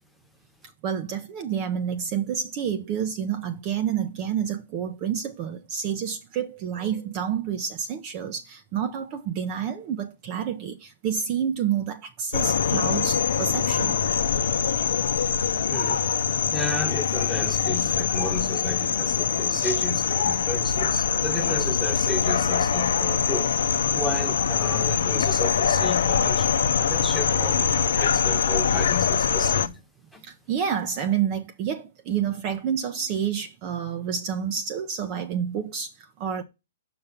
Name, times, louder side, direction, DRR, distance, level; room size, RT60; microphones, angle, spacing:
voice 1, 0.8-14.0 30.2-36.4, right 8 dB, 30° right, 0.7 m, -29 dB
sound 1, 12.3-29.7, left 7 dB, 75° left, 0.6 m, -23 dB
voice 2, 15.7-16.0 16.5-23.5 23.9-29.8 30.1-30.2, left 2 dB, ahead, 1.1 m, -33 dB
5.9 x 5.6 x 5.2 m
hypercardioid pair, 150°, 0 cm